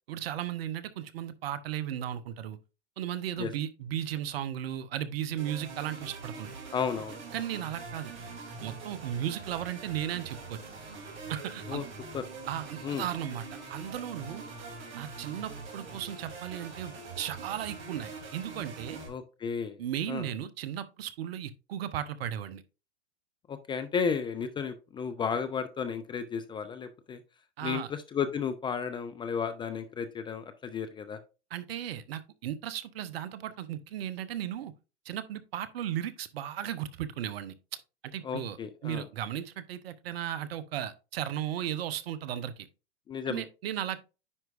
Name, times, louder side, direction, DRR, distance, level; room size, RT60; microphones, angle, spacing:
voice 1, 0.1-2.6 3.0-6.6 7.3-8.1 8.6-10.6 11.3-11.8 12.5-13.4 13.7-14.4 14.9-19.0 19.8-22.6 27.6-27.9 31.5-34.7 35.0-37.5 38.0-38.6 38.8-42.7 43.3-44.0, right 11 dB, 60° right, 0.9 m, -35 dB
sound 1, 5.4-19.1, right 4 dB, 35° right, 3.0 m, -44 dB
voice 2, 6.7-7.2 11.7-11.9 12.1-12.2 12.8-13.1 19.0-19.8 20.1-20.3 23.5-27.2 27.6-31.2 38.2-39.1 43.1-43.4, left 6 dB, 15° left, 0.4 m, -33 dB
9.8 x 4.5 x 2.5 m
hypercardioid pair, 105°, 34 cm